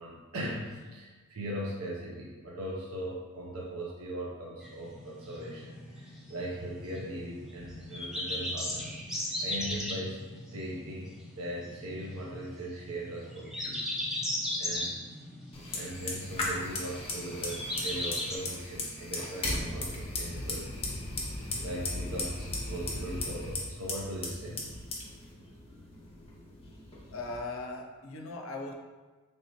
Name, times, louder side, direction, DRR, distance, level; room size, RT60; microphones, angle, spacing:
voice 1, 0.0-14.2 14.6-14.9 15.7-20.7 21.6-24.8, right 1 dB, 75° right, -3 dB, 0.7 m, -39 dB
sound 1, 4.6-18.4, left 1 dB, ahead, 0.4 m, -38 dB
Fire, 15.5-27.4, left 2 dB, 25° left, 0.7 m, -37 dB
voice 2, 27.1-28.7, left 2 dB, 65° left, 2 dB, 0.5 m, -38 dB
3.4 x 2.8 x 4.2 m, 1.3 s
head